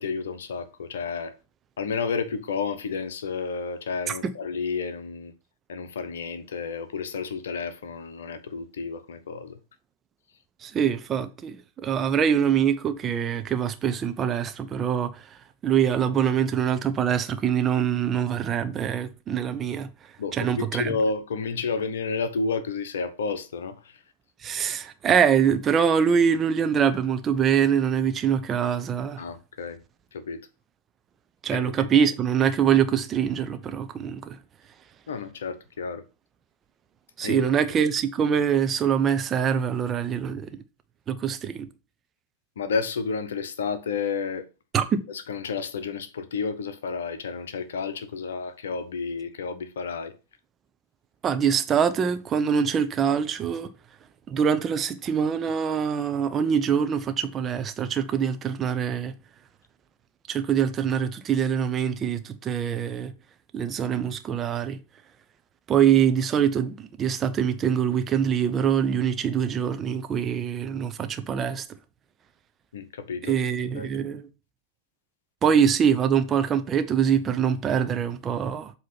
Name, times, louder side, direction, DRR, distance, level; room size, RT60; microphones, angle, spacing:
voice 1, 0.0-1.3 1.8-5.3 5.7-9.6 20.2-24.0 29.2-29.8 30.1-30.5 31.5-31.9 35.1-36.0 37.2-37.5 42.6-44.5 45.1-50.1 72.7-73.4 73.7-73.9, left 5 dB, 65° left, 0.8 m, -31 dB
voice 2, 10.6-15.2 15.6-19.9 20.3-20.9 24.4-29.2 31.4-34.4 37.2-40.5 41.1-41.7 44.7-45.0 51.2-53.7 54.3-59.1 60.3-63.1 63.5-64.8 65.7-71.6 73.2-74.3 75.4-78.7, right 8 dB, 25° right, 0.6 m, -24 dB
7.5 x 2.9 x 5.5 m
figure-of-eight pair, 90°, 0 cm